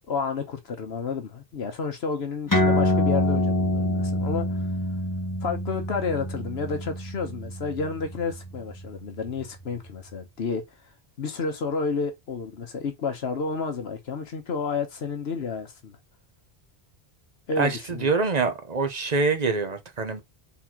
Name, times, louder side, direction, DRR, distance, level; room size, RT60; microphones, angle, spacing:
voice 1, 0.1-4.7 5.4-10.6 11.2-15.9 17.5-18.1, left 5 dB, 75° left, 1.2 m, -30 dB
sound 1, 2.5-9.4, left 1 dB, 20° left, 0.9 m, -26 dB
voice 2, 17.6-20.2, right 4 dB, 45° right, 0.9 m, -25 dB
4.1 x 4.1 x 2.9 m
omnidirectional pair, 1.1 m